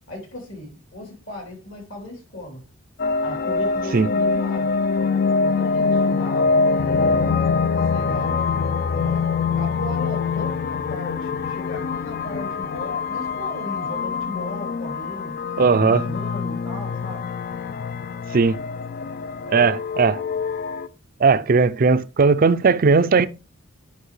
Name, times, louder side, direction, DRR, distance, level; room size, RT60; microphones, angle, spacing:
voice 1, 0.1-2.6 3.2-4.8 5.4-7.5 7.9-8.4 8.9-9.3 9.5-15.3 15.8-17.3 19.4-19.7 21.3-21.4, left 1 dB, 70° left, 3.4 m, -36 dB
sound 1, 3.0-20.9, left 4 dB, 45° left, 0.4 m, -24 dB
voice 2, 15.6-16.0 18.3-18.6 19.5-20.2 21.2-23.3, right 4 dB, 45° right, 0.4 m, -17 dB
10.0 x 5.7 x 3.2 m
head